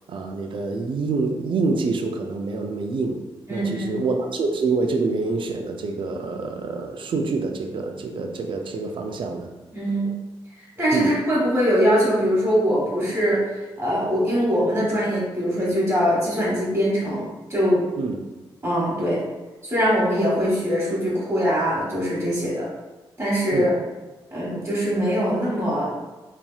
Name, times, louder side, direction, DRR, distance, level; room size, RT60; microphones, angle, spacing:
voice 1, 0.1-3.2 3.5-9.5 10.9-11.1 18.0-18.2 23.5-23.7, right 3 dB, 55° right, 4 dB, 0.4 m, -26 dB
voice 2, 3.5-4.0 9.7-10.2 10.8-17.9 18.6-19.2 19.6-22.7 23.2-23.7 24.3-25.9, equal, 30° right, -7 dB, 1.3 m, -22 dB
2.9 x 2.7 x 2.3 m, 1.1 s
supercardioid pair, 50°, 10 cm